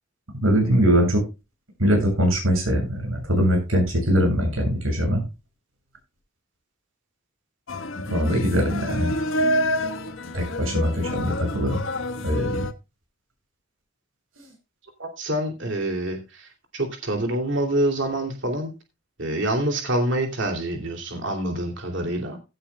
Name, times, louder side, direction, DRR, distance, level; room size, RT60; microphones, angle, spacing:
voice 1, 0.4-1.2 1.8-5.2 8.1-9.1 10.3-11.8 12.2-12.7 14.4-14.5, equal, 90° right, 2 dB, 7.3 m, -22 dB
sound 1, 7.7-12.7, left 1 dB, 75° left, 1.4 m, -28 dB
voice 2, 15.0-18.7 19.2-22.4, right 1 dB, 65° right, 4 dB, 2.8 m, -26 dB
16.5 x 9.8 x 2.3 m, 0.27 s
head